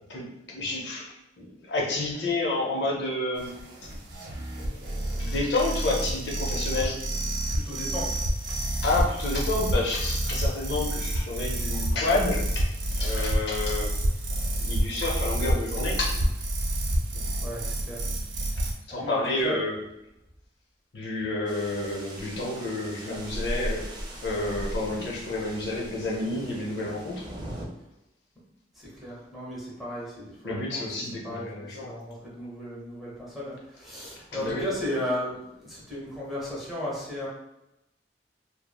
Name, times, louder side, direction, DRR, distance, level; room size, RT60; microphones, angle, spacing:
voice 1, 0.0-3.5 4.6-7.0 8.8-13.9 14.6-16.1 18.9-19.7 20.9-23.9 24.2-27.3 30.4-31.9 34.3-34.6, left 2 dB, 70° left, -3 dB, 0.6 m, -30 dB
sound 1, 3.4-18.7, right 1 dB, 90° right, 0.5 m, -29 dB
voice 2, 7.5-8.2 8.5-8.6 17.4-18.1 18.5-19.6 28.7-37.3, equal, ahead, -7 dB, 0.8 m, -35 dB
sound 2, 21.5-27.7, equal, 25° right, 0.4 m, -38 dB
3.0 x 2.0 x 2.2 m, 0.89 s
head